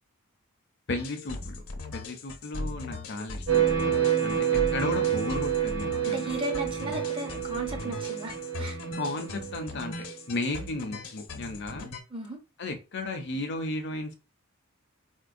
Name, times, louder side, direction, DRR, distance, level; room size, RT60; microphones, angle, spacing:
voice 1, 0.9-1.6 1.9-3.9 4.2-6.3 9.0-11.9 12.6-14.1, left 2 dB, 50° left, 0.6 m, -34 dB
sound 1, 1.0-12.0, left 2 dB, 75° left, 0.9 m, -39 dB
sound 2, 3.5-10.1, right 9 dB, 65° right, 1.4 m, -28 dB
voice 2, 6.0-8.8 12.1-12.4, right 1 dB, 25° right, 0.6 m, -36 dB
4.4 x 2.2 x 2.5 m
head